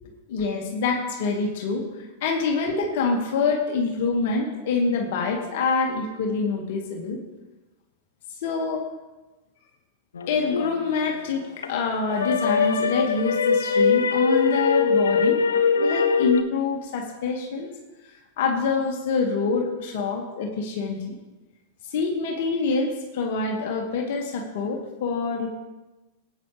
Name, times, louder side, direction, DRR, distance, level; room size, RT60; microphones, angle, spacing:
voice 1, 0.0-7.2 8.4-8.9 10.3-15.4 15.8-17.7 18.4-21.2 21.9-25.5, left 4 dB, 60° left, 1 dB, 2.1 m, -26 dB
sound 1, 10.2-11.7 12.1-16.4, left 5 dB, 80° left, 0.8 m, -22 dB
18.5 x 9.2 x 3.5 m, 1.1 s
hypercardioid pair, 100°, 0 cm